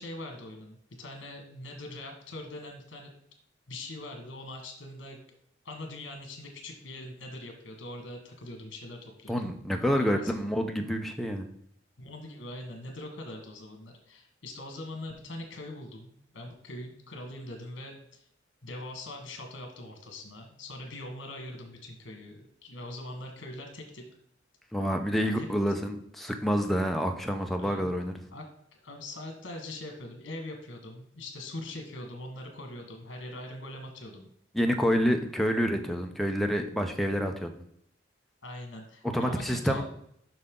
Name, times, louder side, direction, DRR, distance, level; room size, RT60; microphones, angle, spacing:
voice 1, 0.0-3.1 3.7-5.2 5.6-9.5 10.0-10.3 12.0-18.3 18.6-24.0 25.2-25.5 27.6-27.9 28.3-28.4 28.7-34.3 38.4-39.8, left 1 dB, 75° left, 4 dB, 1.5 m, -42 dB
voice 2, 9.3-11.5 24.7-28.1 34.5-37.5 39.1-39.8, equal, ahead, 3 dB, 0.6 m, -28 dB
7.8 x 5.7 x 3.8 m, 0.69 s
head